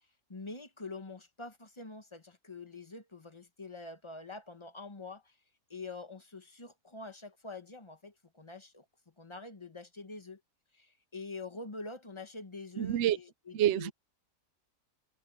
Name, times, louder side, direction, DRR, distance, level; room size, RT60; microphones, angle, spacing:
voice 1, 0.3-5.3 5.7-8.8 9.2-10.4 10.7-13.9, left 3 dB, 20° left, 1.1 m, -45 dB
voice 2, 12.8-13.2 13.5-13.9, right 11 dB, 65° right, 0.7 m, -27 dB
omnidirectional pair, 1.7 m